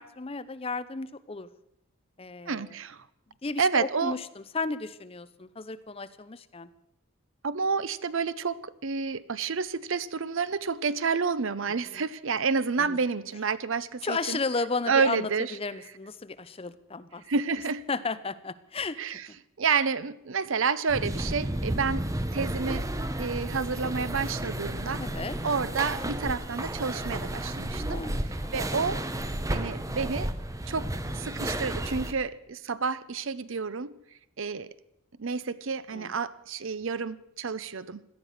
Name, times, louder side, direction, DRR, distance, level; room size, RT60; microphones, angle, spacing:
voice 1, 0.0-1.5 2.2-2.8 3.4-6.7 11.9-12.0 12.8-13.0 14.0-17.2 17.9-19.0 25.0-25.4 27.9-28.5 35.9-36.1, left 3 dB, 25° left, 13 dB, 0.6 m, -34 dB
voice 2, 2.5-3.1 3.6-4.1 7.4-14.4 14.9-15.5 17.3-17.8 19.0-19.3 19.6-22.1 22.3-22.9 23.2-25.0 25.4-28.0 28.5-29.0 29.5-30.3 30.7-33.9 34.4-34.7 35.2-38.1, right 5 dB, 65° right, 17 dB, 0.7 m, -29 dB
sound 1, 20.9-32.1, right 1 dB, 15° right, 0.8 m, -32 dB
17.5 x 12.5 x 6.6 m, 0.81 s
head